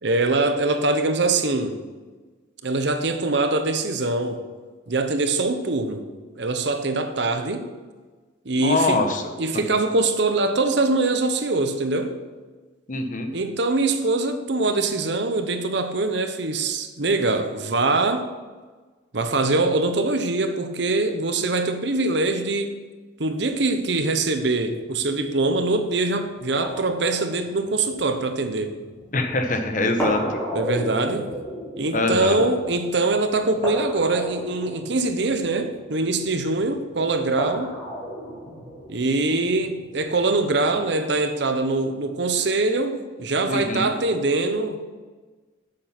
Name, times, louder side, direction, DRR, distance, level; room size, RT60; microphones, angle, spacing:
voice 1, 0.0-1.8 2.6-4.4 4.9-6.1 6.4-7.7 8.4-9.1 9.4-12.2 13.3-18.3 19.1-22.7 23.2-28.7 30.5-31.3 31.8-37.7 38.9-44.8, right 3 dB, 60° right, 0.9 m, -23 dB
voice 2, 8.6-9.2 12.9-13.3 29.1-30.4 31.9-32.4 43.5-43.9, left 2 dB, 40° left, 1.1 m, -23 dB
sound 1, 23.4-40.8, equal, 10° left, 3.3 m, -35 dB
8.9 x 7.6 x 5.9 m
head